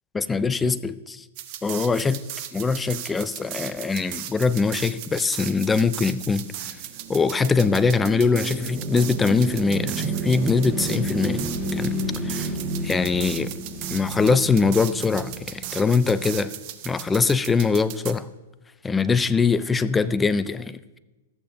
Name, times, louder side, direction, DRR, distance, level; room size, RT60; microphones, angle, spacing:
voice 1, 0.1-1.2 1.6-2.2 2.5-6.5 7.1-11.9 12.2-12.5 12.8-13.5 13.9-16.5 16.8-18.3 18.8-21.0, left 4 dB, 10° left, 15 dB, 0.4 m, -22 dB
sound 1, 1.3-18.1, right 12 dB, 45° right, 0.8 m, -37 dB
sound 2, 6.6-15.8, right 1 dB, 15° right, 1.4 m, -31 dB
13.5 x 8.3 x 2.6 m, 1.1 s
hypercardioid pair, 130°, 0 cm